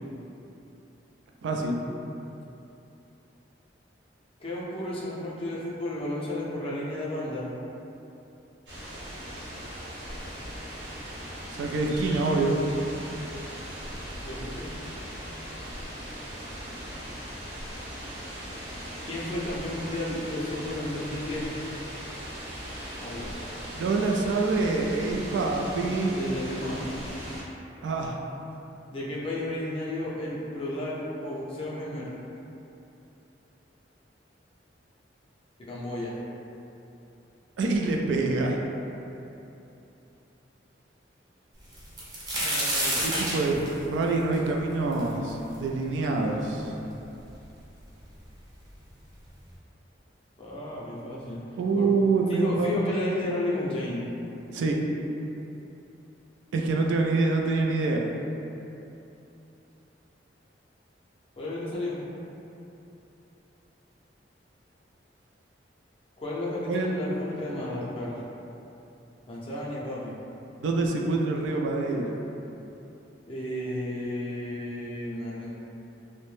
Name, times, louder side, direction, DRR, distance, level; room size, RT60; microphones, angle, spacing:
voice 1, 1.4-1.8 11.5-12.6 23.8-26.2 27.8-28.2 37.6-38.6 42.4-46.8 51.6-52.7 54.5-54.8 56.5-58.1 66.7-66.9 70.6-72.1, right 3 dB, 90° right, 1 dB, 0.3 m, -26 dB
voice 2, 4.4-7.5 14.2-14.8 19.0-21.5 23.0-23.3 26.1-27.0 28.9-32.1 35.6-36.2 50.4-51.4 51.7-51.9 52.3-54.1 61.4-62.0 66.2-68.2 69.3-70.1 73.3-75.5, left 1 dB, 30° left, -6 dB, 0.4 m, -32 dB
sound 1, 8.7-27.4, equal, 75° right, 0.9 m, -39 dB
sound 2, 41.7-45.5 46.0-46.1 46.9-47.0 47.3-47.9 48.8-48.9 49.3-49.5, right 1 dB, 20° right, 0.5 m, -29 dB
2.6 x 2.1 x 3.1 m, 2.9 s
head